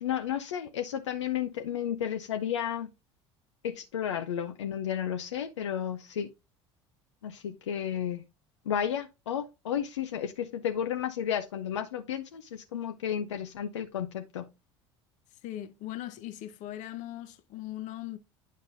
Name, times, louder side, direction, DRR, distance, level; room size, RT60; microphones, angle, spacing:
voice 1, 0.0-2.9 3.6-6.3 7.2-8.2 8.7-14.5, left 9 dB, 85° left, 0.5 m, -32 dB
voice 2, 15.4-18.2, left 13 dB, 55° left, 0.8 m, -39 dB
9.3 x 5.2 x 2.5 m
hypercardioid pair, 70°, 15 cm